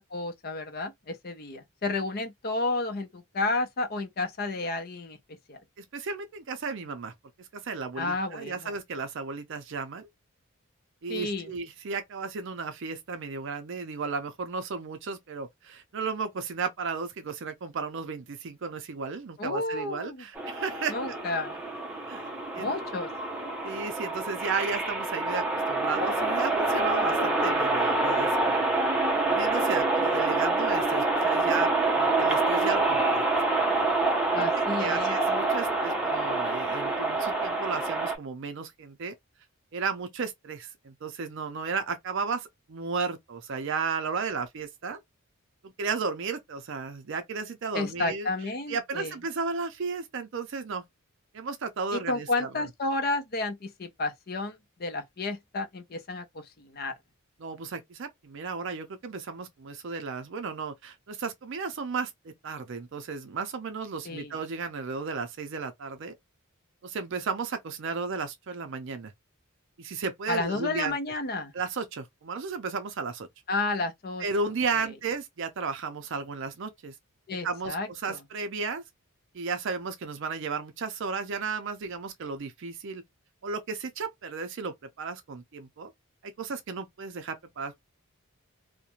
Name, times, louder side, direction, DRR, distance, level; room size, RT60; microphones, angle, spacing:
voice 1, 0.0-5.2 5.5-5.6 8.0-8.7 11.1-11.5 19.4-20.2 20.9-21.6 22.6-23.1 34.3-35.2 47.7-49.1 51.9-56.9 64.0-64.3 70.3-71.5 73.5-74.2 77.3-78.2, left 2 dB, 45° left, 0.6 m, -31 dB
voice 2, 5.8-7.1 7.4-10.1 11.0-20.9 22.1-22.3 22.5-22.7 23.6-28.6 29.3-33.2 33.5-33.9 34.4-34.5 34.7-39.1 39.7-45.0 45.6-48.3 48.7-50.9 51.3-52.5 57.4-66.1 66.8-69.1 69.8-71.0 71.5-73.3 74.2-76.9 77.3-78.8 79.3-83.0 83.4-85.9 86.2-87.8, right 4 dB, 60° right, 0.5 m, -34 dB
sound 1, 20.4-38.2, right 2 dB, 5° right, 0.6 m, -26 dB
2.4 x 2.1 x 2.8 m
head